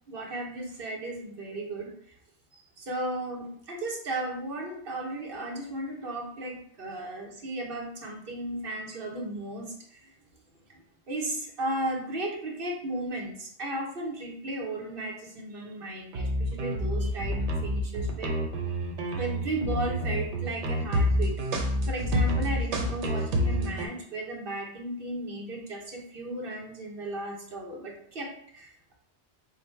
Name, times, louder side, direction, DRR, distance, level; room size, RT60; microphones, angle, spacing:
voice 1, 0.1-1.9 2.5-10.1 11.1-18.3 19.1-28.9, right 1 dB, 55° right, 0 dB, 1.0 m, -35 dB
sound 1, 16.1-23.9, equal, 80° right, 1.0 m, -28 dB
4.9 x 2.1 x 4.4 m, 0.64 s
omnidirectional pair, 1.2 m